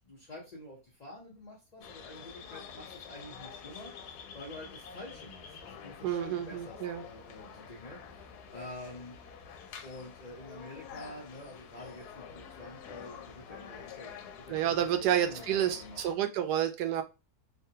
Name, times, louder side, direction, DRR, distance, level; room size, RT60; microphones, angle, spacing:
voice 1, 0.0-9.2 9.8-14.7 15.0-16.2, left 1 dB, 45° left, -4 dB, 0.5 m, -48 dB
sound 1, 1.8-16.1, left 6 dB, 80° left, 1.1 m, -48 dB
voice 2, 6.0-7.0 14.5-17.0, right 10 dB, 85° right, 7 dB, 1.1 m, -29 dB
3.3 x 2.3 x 2.7 m, 0.28 s
omnidirectional pair, 1.7 m